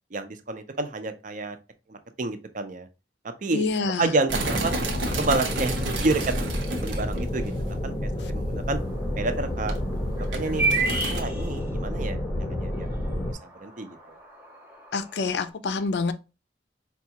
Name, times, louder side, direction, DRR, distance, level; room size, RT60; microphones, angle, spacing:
voice 1, 0.1-1.6 1.9-2.9 3.4-3.7 4.0-4.7 5.2-8.8 9.2-9.8 10.3-10.7 11.0-12.2 12.5-14.2, right 3 dB, 45° right, 0.5 m, -29 dB
voice 2, 3.5-4.2 14.9-16.1, left 4 dB, 65° left, 0.4 m, -27 dB
sound 1, 4.3-13.3, left 1 dB, 15° left, 0.5 m, -30 dB
sound 2, 4.3-7.7 8.1-8.3 8.8-9.3 9.6-11.2, right 2 dB, 90° right, 0.8 m, -32 dB
sound 3, 8.8-15.5, right 3 dB, 10° right, 0.9 m, -33 dB
4.7 x 2.3 x 2.7 m
head